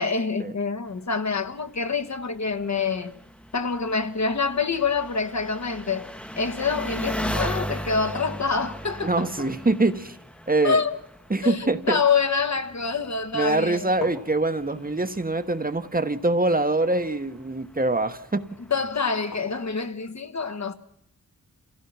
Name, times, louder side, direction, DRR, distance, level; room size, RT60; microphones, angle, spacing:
voice 1, 0.0-3.1 3.5-6.1 6.4-9.5 10.6-11.0 11.4-13.9 18.7-20.7, left 5 dB, 50° left, 1.4 m, -26 dB
Engine, 0.9-19.0, equal, 5° left, 1.1 m, -38 dB
voice 2, 9.0-10.2 10.5-10.8 11.3-12.0 13.3-18.5, right 2 dB, 25° right, 1.2 m, -24 dB
sound 1, 14.0-19.8, left 3 dB, 90° left, 5.2 m, -45 dB
27.5 x 16.0 x 5.9 m
cardioid pair, 60°, 35 cm